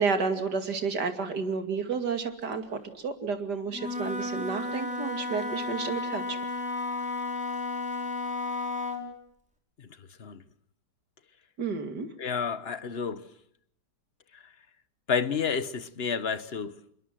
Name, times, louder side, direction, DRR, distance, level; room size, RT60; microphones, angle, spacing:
voice 1, 0.0-6.4 11.6-12.1, right 5 dB, 70° right, 3.0 m, -31 dB
Wind instrument woodwind instrument, 3.7-9.1, left 2 dB, 5° right, 4.9 m, -33 dB
voice 2, 12.2-13.2 15.1-16.7, left 6 dB, 40° left, 1.3 m, -30 dB
27.0 x 22.0 x 7.6 m
omnidirectional pair, 1.8 m